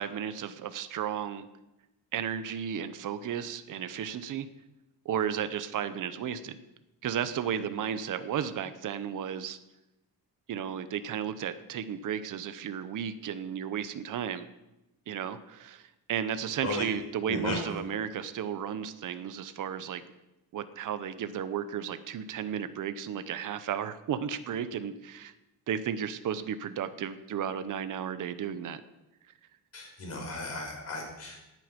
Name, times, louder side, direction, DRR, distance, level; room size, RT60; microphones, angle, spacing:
voice 1, 0.0-1.5 2.1-4.5 5.0-6.6 7.0-9.6 10.5-14.5 15.1-20.0 20.5-25.3 25.7-28.8, right 8 dB, 55° right, 11 dB, 0.8 m, -34 dB
voice 2, 17.3-17.7 29.7-31.4, left 2 dB, 40° left, 0 dB, 4.6 m, -35 dB
17.0 x 9.3 x 5.2 m, 0.96 s
wide cardioid pair, 165°, 38 cm